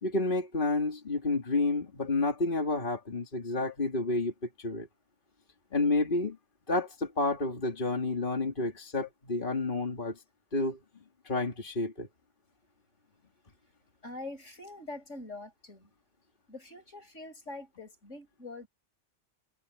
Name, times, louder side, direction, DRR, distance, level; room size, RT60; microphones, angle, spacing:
voice 1, 0.0-4.9 5.7-6.4 6.7-10.2 10.5-10.8 11.2-12.1, left 2 dB, 45° left, 2.6 m, -30 dB
voice 2, 14.0-15.9 16.5-18.7, left 2 dB, 85° left, 6.5 m, -44 dB
omnidirectional pair, 1.2 m